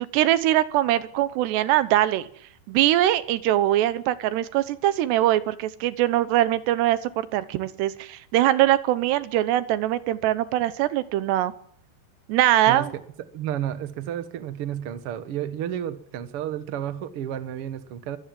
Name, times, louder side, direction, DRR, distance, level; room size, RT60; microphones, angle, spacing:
voice 1, 0.0-2.3 2.7-11.5 12.3-12.9, right 14 dB, 90° right, 15 dB, 3.2 m, -22 dB
voice 2, 13.3-18.2, right 10 dB, 65° right, 11 dB, 1.4 m, -31 dB
23.5 x 16.5 x 7.6 m, 0.64 s
omnidirectional pair, 4.7 m